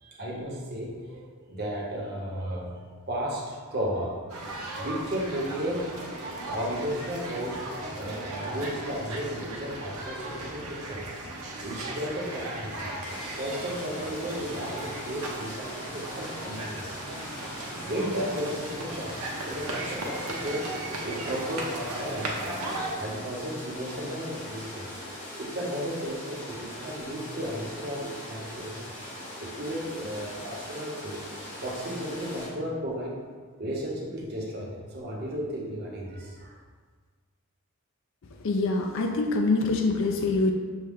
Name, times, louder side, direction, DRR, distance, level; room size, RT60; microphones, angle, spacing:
voice 1, 0.0-2.8 3.1-4.2 4.8-5.9 6.5-7.7 7.9-11.3 11.6-12.9 13.4-16.9 17.8-20.7 21.0-22.5 23.0-25.0 25.4-28.9 29.4-31.2 31.6-33.2 33.6-36.6, equal, 45° right, -3 dB, 0.9 m, -34 dB
sound 1, 4.3-22.9, right 2 dB, 85° right, 0.7 m, -37 dB
sound 2, 13.0-32.5, left 1 dB, 40° left, 1.2 m, -41 dB
voice 2, 38.4-40.5, left 3 dB, 60° left, 3 dB, 0.4 m, -25 dB
6.3 x 2.2 x 3.5 m, 1.5 s
head